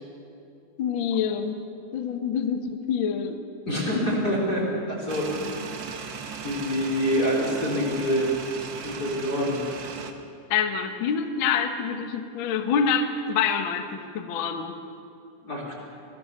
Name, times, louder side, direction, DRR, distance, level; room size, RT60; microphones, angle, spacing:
voice 1, 0.8-1.6 1.9-3.4 10.5-14.7, left 6 dB, 55° left, 6 dB, 1.3 m, -26 dB
voice 2, 3.7-5.7 6.4-8.3 8.7-9.6 15.4-15.7, equal, 25° left, -3 dB, 4.2 m, -26 dB
sound 1, 5.1-10.1, right 5 dB, 80° right, 1.0 m, -37 dB
26.5 x 18.5 x 6.8 m, 2.6 s
omnidirectional pair, 4.2 m